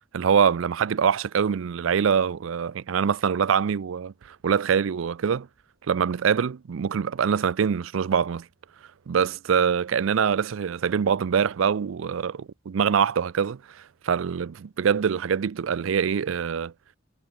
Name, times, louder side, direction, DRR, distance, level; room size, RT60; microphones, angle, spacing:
voice 1, 0.1-5.5 5.9-8.5 9.1-16.7, right 7 dB, 80° right, 0.4 m, -24 dB
head